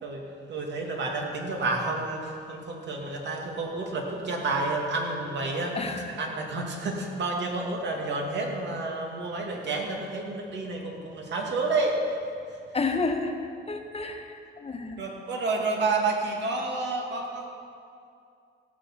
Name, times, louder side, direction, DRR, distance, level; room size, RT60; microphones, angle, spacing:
voice 1, 0.0-5.8 6.2-12.2 12.5-12.6 15.0-17.5, right 3 dB, 65° right, 0 dB, 2.4 m, -30 dB
voice 2, 5.7-6.1 12.7-15.0, left 3 dB, 30° left, 4 dB, 1.4 m, -31 dB
16.0 x 6.8 x 7.5 m, 2.4 s
cardioid pair, 90°, 20 cm